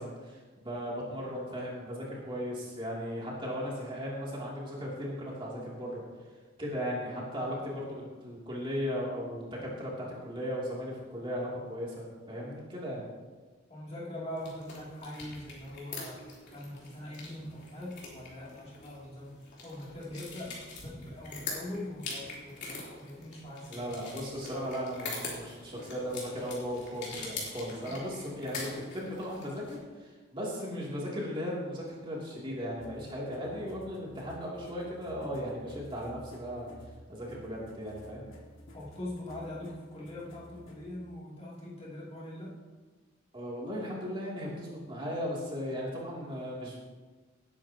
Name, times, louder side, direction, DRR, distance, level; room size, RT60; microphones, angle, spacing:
voice 1, 0.0-6.0 6.6-13.1 23.7-36.7 37.1-38.3 43.3-46.8, equal, 25° right, -5 dB, 2.8 m, -37 dB
voice 2, 13.7-16.2 16.5-23.9 27.9-28.0 38.7-42.6, left 1 dB, 30° left, -6 dB, 2.8 m, -42 dB
sound 1, 14.3-29.8, left 3 dB, 55° left, 3.6 m, -44 dB
sound 2, 32.8-40.8, equal, 85° left, 2.0 m, -52 dB
19.0 x 9.6 x 2.9 m, 1.4 s
head